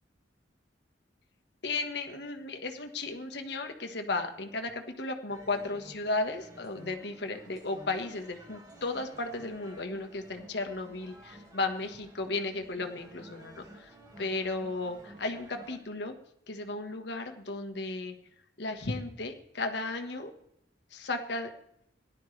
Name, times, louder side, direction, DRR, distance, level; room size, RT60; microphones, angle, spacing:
voice 1, 1.6-16.2 16.5-18.1 18.6-20.3 20.9-21.5, left 3 dB, 65° left, 5 dB, 1.4 m, -35 dB
sound 1, 5.3-15.8, right 1 dB, 20° right, 2.0 m, -52 dB
17.5 x 11.5 x 3.3 m, 0.74 s
head